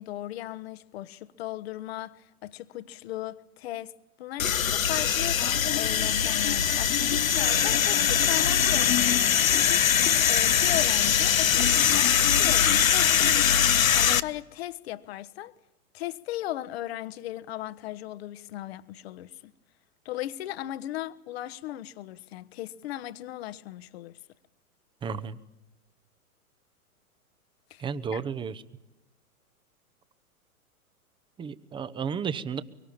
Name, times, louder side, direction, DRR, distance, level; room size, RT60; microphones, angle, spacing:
voice 1, 0.0-3.9 4.2-5.4 5.8-13.6 13.9-15.5 15.9-19.5 20.0-24.1 27.7-28.2, left 14 dB, 45° left, 1.3 m, -37 dB
sound 1, 4.4-14.2, left 9 dB, 65° left, 1.1 m, -22 dB
voice 2, 25.0-25.4 27.8-28.6 31.4-32.6, right 6 dB, 10° right, 1.0 m, -32 dB
24.5 x 24.0 x 8.6 m
figure-of-eight pair, 105°, 44 cm